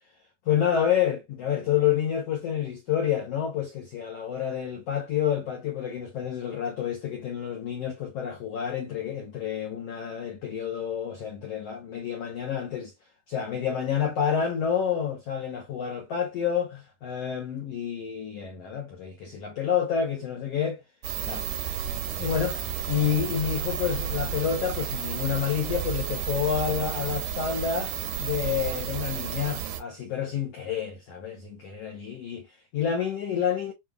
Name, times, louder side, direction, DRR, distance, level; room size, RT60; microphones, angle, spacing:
voice 1, 0.5-12.9 13.3-20.8 21.2-21.5 22.2-33.7, left 8 dB, 85° left, 1.3 m, -29 dB
sound 1, 21.0-29.8, right 9 dB, 75° right, 2.0 m, -32 dB
7.2 x 2.4 x 2.3 m
omnidirectional pair, 4.4 m